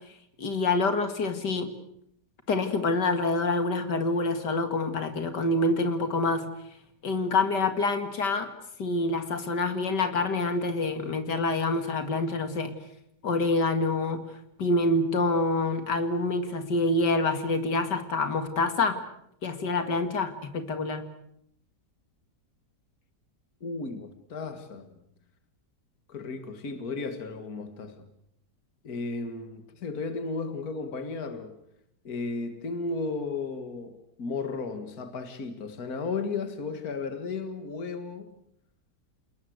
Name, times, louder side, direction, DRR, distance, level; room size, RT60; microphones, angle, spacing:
voice 1, 0.4-1.7 2.5-6.5 7.0-8.5 8.8-12.8 13.2-14.3 14.6-19.0 19.4-21.1, left 2 dB, 75° left, 2.7 m, -26 dB
voice 2, 23.6-25.0 26.1-28.1 28.8-31.6 32.0-38.3, left 4 dB, 60° left, 2.4 m, -34 dB
28.5 x 20.0 x 8.0 m
omnidirectional pair, 1.8 m